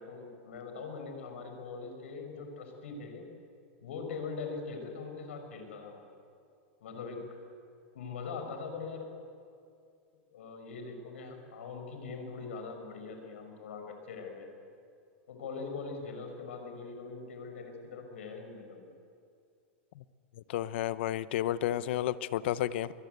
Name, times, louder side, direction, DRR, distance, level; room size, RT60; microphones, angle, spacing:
voice 1, 0.0-3.3 3.8-6.0 6.8-7.4 7.9-9.1 10.3-14.5 15.3-18.9, left 4 dB, 80° left, 5 dB, 5.9 m, -42 dB
voice 2, 20.5-22.9, left 12 dB, 65° left, 16 dB, 0.9 m, -31 dB
23.0 x 22.0 x 8.3 m, 2.4 s
supercardioid pair, 150°, 7 cm